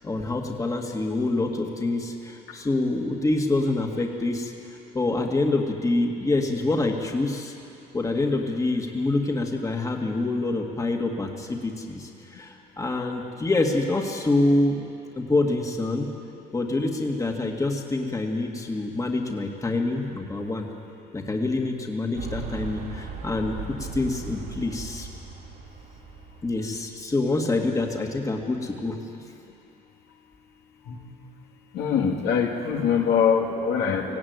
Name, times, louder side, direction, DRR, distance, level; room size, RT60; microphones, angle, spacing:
voice 1, 0.0-4.5 4.9-7.5 7.9-14.9 15.2-16.1 16.5-20.7 21.1-23.6 23.9-25.1 26.4-29.3, left 2 dB, 20° left, 2 dB, 2.0 m, -26 dB
sound 1, 22.1-26.9, right 5 dB, 70° right, 2.6 m, -38 dB
voice 2, 31.7-34.2, left 7 dB, 80° left, 1 dB, 2.4 m, -23 dB
18.5 x 16.0 x 9.6 m, 2.6 s
cardioid pair, 110°, 17 cm